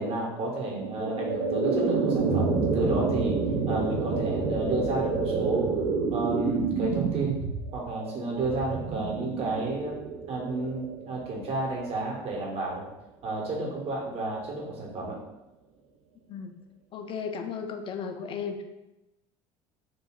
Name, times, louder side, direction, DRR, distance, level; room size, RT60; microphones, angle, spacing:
voice 1, 0.0-3.4 3.7-5.7 6.1-7.3 7.7-9.9 10.3-12.9 13.2-15.2, right 2 dB, 55° right, -2 dB, 0.9 m, -31 dB
sound 1, 0.7-11.8, right 4 dB, 70° right, 0.4 m, -29 dB
voice 2, 16.9-18.6, left 6 dB, 45° left, 6 dB, 0.4 m, -35 dB
2.3 x 2.1 x 3.6 m, 0.97 s
hypercardioid pair, 80°, 13 cm